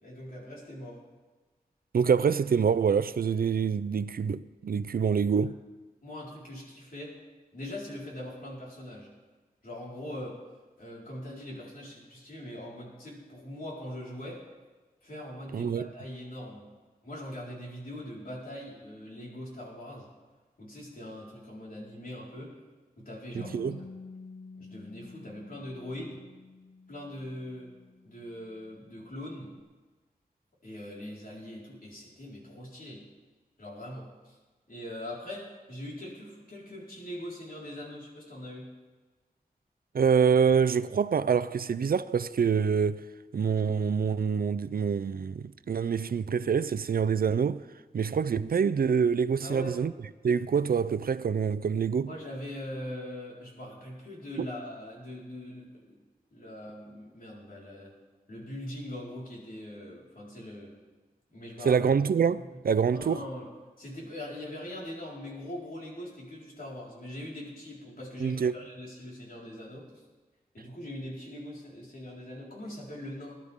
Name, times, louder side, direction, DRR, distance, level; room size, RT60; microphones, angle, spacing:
voice 1, 0.0-1.0 6.0-7.2 7.5-9.1 9.6-10.4 10.8-14.4 15.0-16.6 17.0-20.1 20.6-22.5 23.0-23.9 24.6-26.2 26.9-27.7 28.0-29.5 30.6-33.1 33.6-34.4 34.7-38.7 49.4-49.8 52.1-56.0 56.3-57.9 58.3-60.7 61.3-61.8 62.3-62.6 62.9-63.5 63.8-69.9 70.5-73.4, left 1 dB, 65° left, 4.6 m, -41 dB
voice 2, 1.9-5.6 15.5-15.9 23.3-23.8 39.9-43.1 43.3-47.6 47.9-49.9 50.2-52.1 54.4-54.5 61.6-63.2 68.2-68.5, right 6 dB, 70° right, 0.5 m, -26 dB
Bass guitar, 23.4-29.6, left 4 dB, 45° left, 1.0 m, -50 dB
20.5 x 11.5 x 3.6 m
wide cardioid pair, 90°, 16 cm